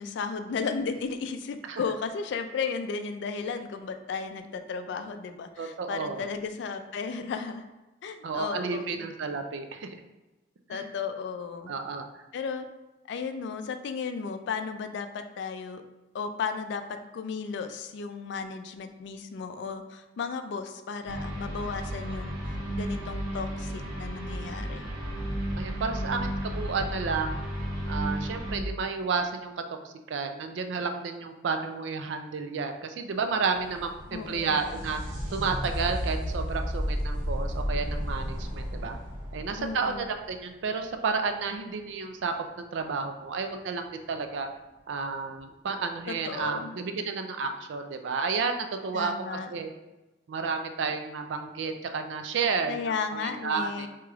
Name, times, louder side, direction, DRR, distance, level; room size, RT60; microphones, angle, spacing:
voice 1, 0.0-7.7 8.0-9.0 10.7-11.7 12.3-12.7 13.1-15.8 16.1-24.9 34.1-34.6 39.6-40.0 46.1-46.7 48.9-49.5 52.7-53.9, left 5 dB, 65° left, 8 dB, 0.3 m, -34 dB
voice 2, 5.6-6.3 8.2-10.0 10.7-10.9 11.7-12.1 25.6-27.4 27.9-35.0 35.3-39.0 39.3-44.5 44.9-49.7 50.3-53.9, right 5 dB, 70° right, 6 dB, 0.4 m, -31 dB
sound 1, 21.1-28.6, equal, 50° right, 1.0 m, -33 dB
sound 2, 33.3-40.8 44.2-44.3 45.4-45.5, equal, 85° right, 1.4 m, -33 dB
4.7 x 2.9 x 2.3 m, 1.1 s
head